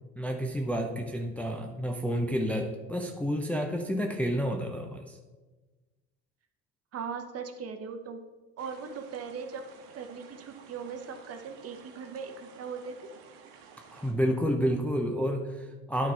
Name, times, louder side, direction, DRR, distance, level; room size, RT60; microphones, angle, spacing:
voice 1, 0.2-5.2 13.9-16.1, equal, 5° left, 2 dB, 0.6 m, -30 dB
voice 2, 6.9-8.2 8.6-9.6 9.9-13.1, right 6 dB, 35° right, 6 dB, 1.0 m, -39 dB
sound 1, 8.6-14.1, right 6 dB, 60° right, 1.2 m, -53 dB
12.5 x 4.4 x 3.4 m, 1.3 s
figure-of-eight pair, 70°, 44 cm